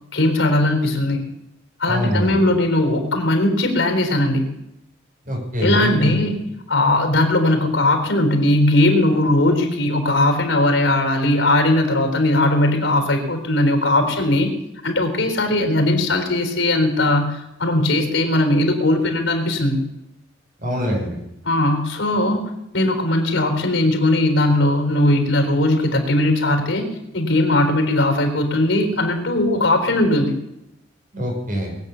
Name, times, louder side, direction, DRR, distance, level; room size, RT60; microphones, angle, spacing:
voice 1, 0.1-1.2 1.8-4.5 5.6-6.4 6.7-14.5 14.8-19.8 21.5-22.4 22.7-26.9 27.1-30.3, left 1 dB, 85° left, 4 dB, 4.0 m, -19 dB
voice 2, 1.8-2.4 5.2-6.2 20.6-21.2 31.1-31.8, equal, 45° right, 0 dB, 6.2 m, -24 dB
21.5 x 8.9 x 7.0 m, 0.86 s
head